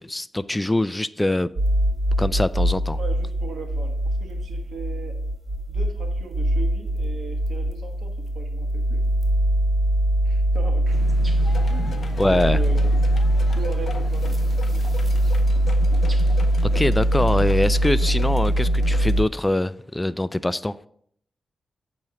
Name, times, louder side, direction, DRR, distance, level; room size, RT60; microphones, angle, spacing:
voice 1, 0.0-1.5 2.2-3.0 12.2-12.6 16.7-20.7, left 1 dB, 20° left, 0.3 m, -23 dB
sound 1, 1.6-19.2, right 1 dB, 45° right, 1.8 m, -22 dB
voice 2, 3.0-5.2 5.7-9.0 10.2-11.1 11.7-13.2 13.6-14.9, right 5 dB, 80° right, 1.2 m, -38 dB
sound 2, 10.8-18.6, equal, 20° right, 1.5 m, -42 dB
sound 3, 11.4-19.2, left 5 dB, 70° left, 0.6 m, -38 dB
8.5 x 3.1 x 5.8 m
cardioid pair, 50°, 0 cm